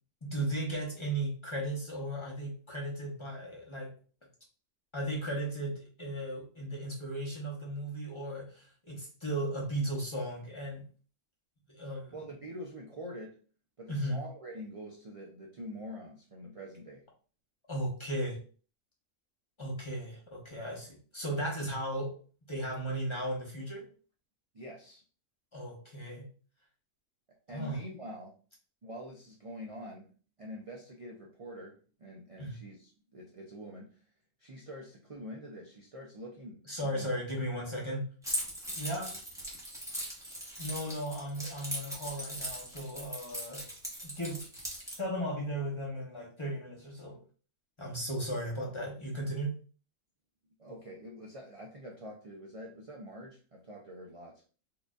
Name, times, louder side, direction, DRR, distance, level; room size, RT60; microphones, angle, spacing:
voice 1, 0.2-3.9 4.9-10.8 11.7-12.2 13.9-14.2 17.7-18.4 19.6-22.2 22.5-23.9 25.5-26.3 27.5-27.8 32.4-32.6 36.6-38.1 38.8-39.1 40.6-43.7 44.0-44.4 45.0-47.2 47.8-49.5, right 1 dB, 25° left, -3 dB, 0.9 m, -36 dB
voice 2, 12.1-13.4 13.8-17.1 24.5-25.0 27.5-28.4 28.8-30.1 30.4-34.0 34.4-37.1 50.6-54.4, equal, 60° right, -2 dB, 0.3 m, -45 dB
Keys jangling, 38.2-45.0, equal, 5° right, 0.9 m, -39 dB
4.6 x 2.6 x 2.4 m, 0.39 s
omnidirectional pair, 1.4 m